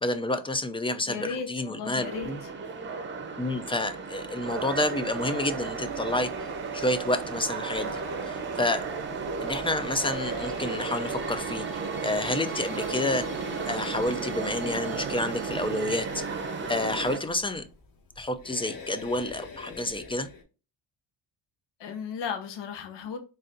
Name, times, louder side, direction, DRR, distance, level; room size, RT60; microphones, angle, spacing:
voice 1, 0.0-2.4 3.4-6.5 6.7-8.8 9.4-11.7 12.0-13.3 13.6-16.2 16.7-17.7 18.2-20.3, left 2 dB, 15° left, 0.4 m, -29 dB
voice 2, 1.1-2.5 21.8-23.2, left 6 dB, 75° left, 0.9 m, -35 dB
sound 1, 2.0-17.2, right 4 dB, 25° right, 0.7 m, -35 dB
sound 2, 4.5-15.9, right 8 dB, 85° right, 0.8 m, -39 dB
sound 3, 7.7-20.4, left 4 dB, 50° left, 1.3 m, -46 dB
4.0 x 2.5 x 3.7 m
cardioid pair, 100°, 42 cm